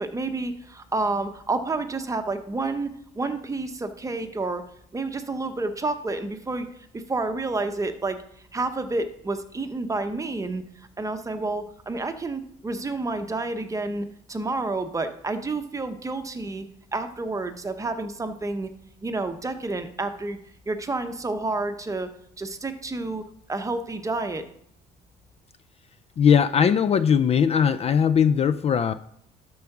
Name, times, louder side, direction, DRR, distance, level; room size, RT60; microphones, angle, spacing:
voice 1, 0.0-2.9 3.1-4.6 4.9-6.7 6.9-8.2 8.5-10.6 11.0-16.7 16.9-18.7 19.0-20.4 20.7-22.1 22.4-23.2 23.5-24.4, right 3 dB, 20° right, 8 dB, 0.9 m, -29 dB
voice 2, 26.2-28.9, left 7 dB, 40° left, 14 dB, 0.4 m, -19 dB
12.0 x 4.7 x 5.9 m, 0.69 s
cardioid pair, 110°, 17 cm